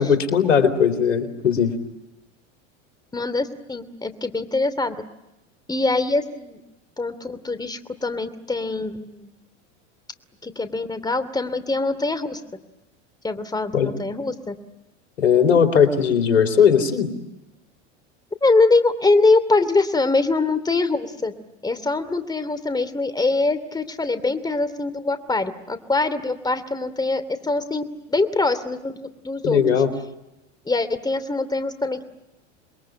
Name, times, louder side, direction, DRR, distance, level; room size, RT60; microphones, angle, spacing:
voice 1, 0.0-1.7 13.7-13.9 15.2-17.1 29.4-29.9, left 7 dB, 90° left, 9 dB, 3.7 m, -18 dB
voice 2, 3.1-5.0 5.7-6.6 7.0-9.3 10.4-12.4 13.2-14.5 18.4-21.3 21.6-29.8 30.7-32.0, left 3 dB, 10° left, 11 dB, 2.8 m, -23 dB
29.0 x 22.0 x 9.1 m, 0.95 s
hypercardioid pair, 95°, 37 cm